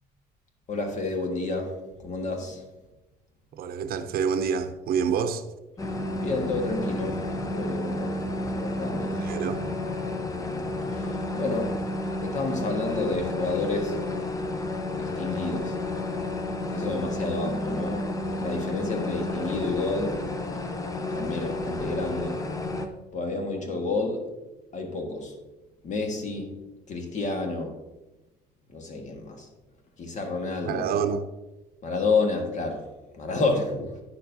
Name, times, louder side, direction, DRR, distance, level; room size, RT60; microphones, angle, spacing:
voice 1, 0.7-1.7 2.0-2.6 6.2-7.2 7.5-8.1 8.4-9.5 10.9-11.7 12.2-14.0 14.9-15.7 16.7-20.1 21.1-22.3 23.1-24.2 24.7-25.3 25.8-26.5 26.9-27.7 28.7-29.4 30.0-30.8 31.8-32.8 33.2-33.8, left 3 dB, 45° left, 1.6 m, -30 dB
voice 2, 3.5-5.4 9.1-9.6 30.6-31.3, right 6 dB, 65° right, 0.6 m, -27 dB
sound 1, 5.8-22.9, left 1 dB, 20° left, 0.8 m, -31 dB
9.7 x 6.8 x 2.7 m
cardioid pair, 110°, 17 cm